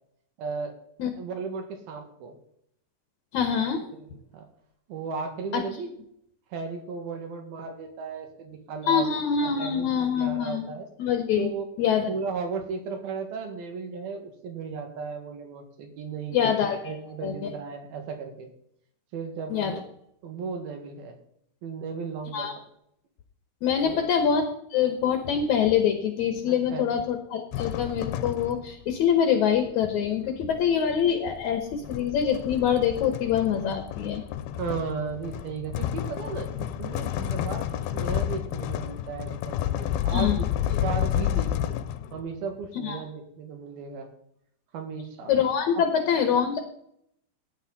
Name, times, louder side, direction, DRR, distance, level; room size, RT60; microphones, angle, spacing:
voice 1, 0.4-0.8 1.2-2.4 3.9-4.0 4.3-4.5 4.9-5.9 6.5-9.1 9.4-10.9 11.4-11.7 12.1-16.4 16.8-18.5 19.1-19.8 20.2-21.2 21.6-22.6 23.8-24.0 26.5-26.8 34.6-41.8 42.1-44.1 44.7-45.3 45.8-45.9, right 5 dB, 70° right, 5 dB, 3.6 m, -35 dB
voice 2, 3.3-3.9 5.5-5.6 8.9-10.7 11.0-11.5 11.8-12.1 16.3-16.9 17.2-17.5 19.5-19.7 22.3-22.5 23.6-34.2 40.1-40.5 42.8-43.0 45.3-46.6, left 8 dB, 65° left, 6 dB, 2.1 m, -25 dB
sound 1, 27.5-28.8 30.0-42.3, left 11 dB, 80° left, 2.6 m, -30 dB
16.5 x 9.5 x 4.1 m, 0.73 s
omnidirectional pair, 4.5 m